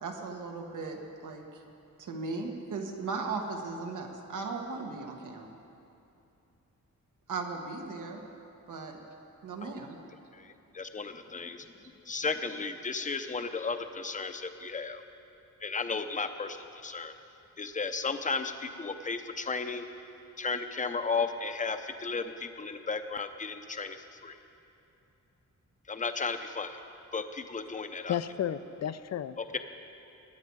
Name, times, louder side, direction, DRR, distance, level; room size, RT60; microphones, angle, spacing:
voice 1, 0.0-1.6 2.0-5.5 7.3-8.2 8.7-9.0 9.4-10.0, right 4 dB, 80° right, 1.6 m, -37 dB
voice 2, 10.3-11.7 12.1-15.0 15.6-17.1 17.6-19.8 20.4-24.0 24.2-24.4 25.9-26.8 27.1-28.1 29.4-29.6, left 4 dB, 25° left, 0.7 m, -34 dB
voice 3, 28.1-29.6, left 9 dB, 60° left, 0.5 m, -33 dB
21.5 x 9.6 x 4.7 m
wide cardioid pair, 125°, 31 cm